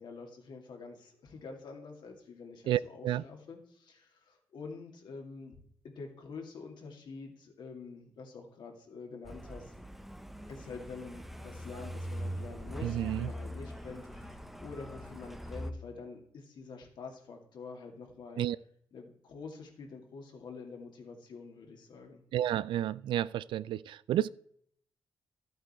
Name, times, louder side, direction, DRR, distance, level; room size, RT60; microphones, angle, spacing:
voice 1, 0.0-5.5 5.8-9.7 10.5-18.5 18.9-22.2, left 4 dB, 65° left, 2 dB, 2.4 m, -47 dB
voice 2, 2.7-3.2 12.8-13.3 18.4-18.6 22.3-24.3, right 12 dB, 85° right, 19 dB, 0.3 m, -31 dB
Truck, 9.2-15.7, equal, ahead, 0.8 m, -42 dB
13.0 x 7.9 x 4.3 m, 0.67 s
cardioid pair, 105°, 8 cm